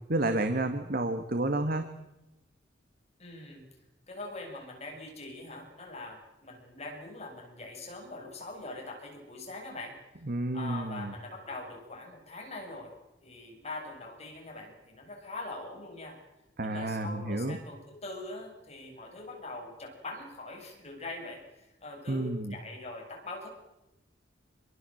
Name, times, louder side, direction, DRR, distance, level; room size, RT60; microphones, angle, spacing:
voice 1, 0.1-1.9 10.2-11.1 16.6-17.6 22.1-22.6, right 2 dB, 55° right, 8 dB, 1.8 m, -30 dB
voice 2, 3.2-3.6 4.1-10.0 10.5-12.9 13.2-16.2 16.6-23.5, left 2 dB, 35° left, 1 dB, 7.9 m, -43 dB
27.5 x 22.5 x 7.9 m, 0.96 s
head